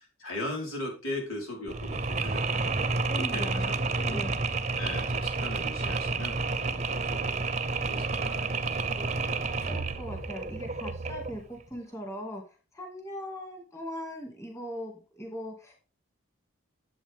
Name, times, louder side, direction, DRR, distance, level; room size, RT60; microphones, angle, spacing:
voice 1, 0.2-2.5 3.1-4.3 4.8-7.4 7.8-9.6, left 1 dB, 85° left, 0 dB, 4.8 m, -39 dB
Mechanisms, 1.7-11.4, right 3 dB, 35° right, 0.8 m, -30 dB
voice 2, 3.1-3.7 4.0-4.4 9.2-9.3 9.6-12.4 12.7-15.8, equal, 15° left, 2 dB, 2.3 m, -39 dB
12.0 x 7.9 x 3.6 m, 0.33 s
head